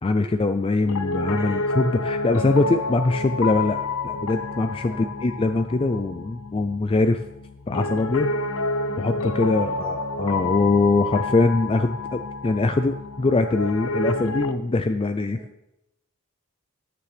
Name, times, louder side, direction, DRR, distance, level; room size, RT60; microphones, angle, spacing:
voice 1, 0.0-7.2 7.7-8.3 9.0-15.4, left 3 dB, 25° left, 9 dB, 0.4 m, -22 dB
Piano, 0.8-14.6, left 2 dB, 70° left, 0.7 m, -29 dB
voice 2, 1.4-1.7 4.9-5.2 8.3-9.8 15.3-15.5, right 1 dB, 10° right, 1 dB, 1.9 m, -44 dB
15.0 x 9.7 x 3.4 m, 0.85 s
head